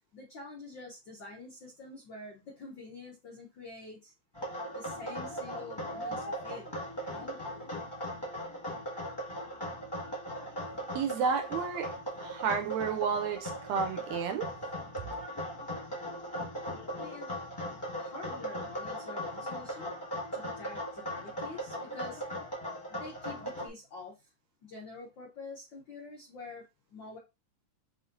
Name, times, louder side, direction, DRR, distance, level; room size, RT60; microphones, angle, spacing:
voice 1, 0.1-4.1 4.7-7.4 16.9-17.3 18.0-19.9 20.3-22.2 22.9-24.3 24.6-27.2, left 3 dB, 75° left, 1.0 m, -47 dB
sound 1, 4.3-23.7, equal, 15° left, 0.8 m, -38 dB
voice 2, 10.9-11.9 12.2-14.5, right 6 dB, 80° right, 1.7 m, -31 dB
7.0 x 2.7 x 2.7 m
omnidirectional pair, 3.6 m